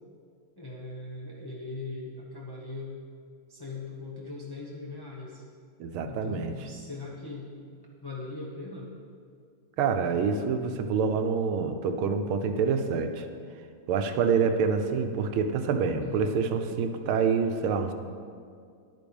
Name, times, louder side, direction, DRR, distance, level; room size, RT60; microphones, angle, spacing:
voice 1, 0.6-2.9 3.5-5.4 6.0-8.9 16.0-16.3, left 3 dB, 20° left, -4 dB, 0.6 m, -40 dB
voice 2, 5.8-6.5 9.8-13.3 13.9-17.9, right 5 dB, 85° right, 7 dB, 1.7 m, -27 dB
11.0 x 9.3 x 5.3 m, 2.2 s
omnidirectional pair, 2.2 m